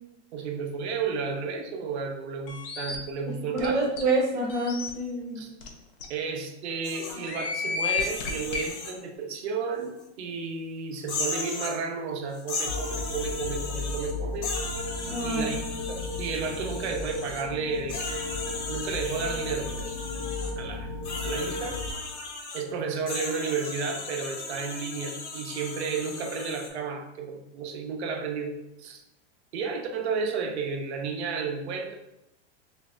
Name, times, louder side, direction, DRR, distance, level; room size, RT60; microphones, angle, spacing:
voice 1, 0.3-3.8 5.3-5.5 6.1-14.5 15.2-18.4 18.6-20.0 20.6-20.9 21.2-21.8 22.5-29.0 29.5-32.0, right 5 dB, 70° right, 3 dB, 0.8 m, -32 dB
sound 1, 2.5-3.0 3.6-3.7 4.0-4.1 4.5-4.9 5.6-5.7 6.0-6.1 7.1-8.7, left 6 dB, 55° left, 0.7 m, -31 dB
voice 2, 3.5-5.4 15.1-15.4, right 2 dB, 10° right, -7 dB, 0.4 m, -27 dB
sound 2, 6.8-7.2 7.9-8.9 10.0-10.1 11.0-11.8 12.3-14.1 14.4-17.4 17.9-20.5 21.0-22.6 23.1-26.7, left 3 dB, 80° left, 1.1 m, -36 dB
sound 3, 12.7-21.9, left 2 dB, 15° left, 0.8 m, -34 dB
5.3 x 2.6 x 2.5 m, 0.84 s
supercardioid pair, 175°, 34 cm